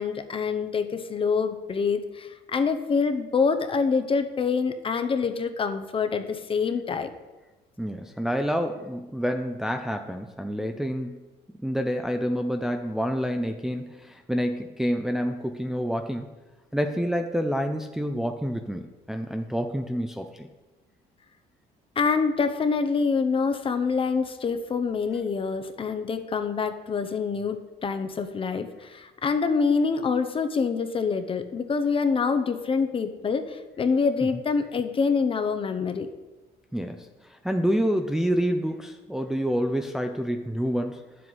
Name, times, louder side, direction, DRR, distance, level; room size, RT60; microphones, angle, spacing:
voice 1, 0.0-7.1 22.0-36.1, left 5 dB, 30° left, 8 dB, 0.7 m, -26 dB
voice 2, 7.8-11.2 11.6-16.3 16.7-20.5 36.7-41.0, equal, 5° right, 5 dB, 0.5 m, -28 dB
9.3 x 7.6 x 4.0 m, 1.1 s
cardioid pair, 110°, 17 cm